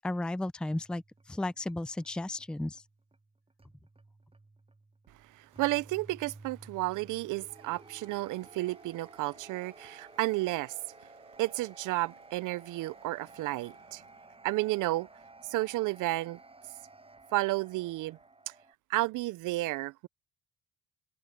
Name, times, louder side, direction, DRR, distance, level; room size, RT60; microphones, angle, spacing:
voice 1, 0.0-1.0 1.3-2.8, left 1 dB, 5° left, 0.4 m, -34 dB
sound 1, 0.7-18.7, right 3 dB, 20° right, 7.2 m, -55 dB
voice 2, 5.3-10.8 11.4-14.0 14.4-15.1 15.5-16.4 17.3-18.2 18.5-18.6 18.9-20.1, right 19 dB, 85° right, 0.5 m, -32 dB
cardioid pair, 90°, 30 cm